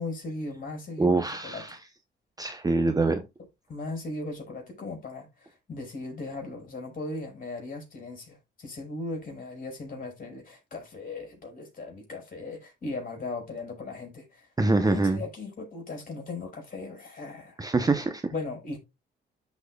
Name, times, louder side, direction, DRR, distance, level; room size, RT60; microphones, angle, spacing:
voice 1, 0.0-1.8 3.7-14.5 14.8-17.6 18.3-18.8, left 3 dB, 45° left, 4.6 m, -38 dB
voice 2, 1.0-1.8 2.4-3.2 14.6-15.2 17.6-18.3, right 3 dB, 20° right, 0.7 m, -24 dB
13.0 x 4.3 x 2.3 m
cardioid pair, 90°, 20 cm